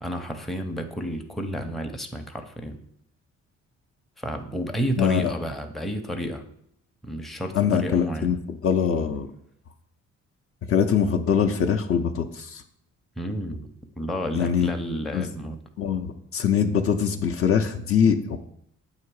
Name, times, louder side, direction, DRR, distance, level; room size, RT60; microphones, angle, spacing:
voice 1, 0.0-2.8 4.2-6.4 7.0-8.4 13.2-13.7 14.0-15.6, equal, ahead, 5 dB, 0.5 m, -31 dB
voice 2, 5.0-5.3 7.6-9.3 10.7-12.6 14.3-14.7 15.1-15.2 15.8-18.4, left 7 dB, 50° left, 5 dB, 0.5 m, -23 dB
7.9 x 2.8 x 4.7 m, 0.72 s
cardioid pair, 90°, 30 cm